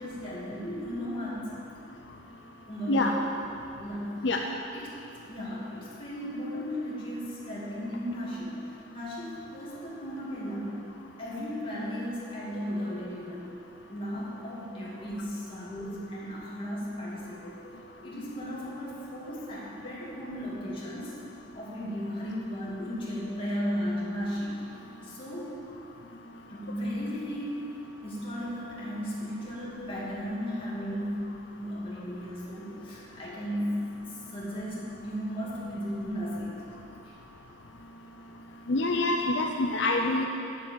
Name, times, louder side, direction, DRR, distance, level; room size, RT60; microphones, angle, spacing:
voice 1, 0.0-1.4 2.7-3.3 3.8-4.3 4.7-4.9 5.3-10.9 11.2-13.5 13.9-17.6 18.0-21.1 21.5-24.6 25.0-25.6 26.5-27.6 28.0-36.7 37.0-37.1, equal, 30° left, -7 dB, 2.5 m, -35 dB
voice 2, 38.7-40.2, left 2 dB, 75° left, 2 dB, 0.6 m, -26 dB
8.2 x 7.4 x 7.3 m, 2.8 s
head